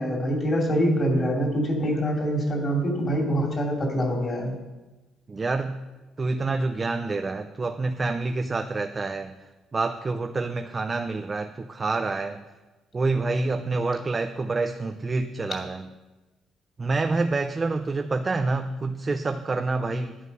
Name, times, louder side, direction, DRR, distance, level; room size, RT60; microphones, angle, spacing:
voice 1, 0.0-4.5, equal, 30° left, 1 dB, 2.7 m, -25 dB
voice 2, 5.3-5.8 6.2-9.3 9.7-12.4 12.9-15.9 16.8-20.2, right 3 dB, 20° right, 7 dB, 0.5 m, -27 dB
11.5 x 9.4 x 5.5 m, 1.2 s
cardioid pair, 145°, 0 cm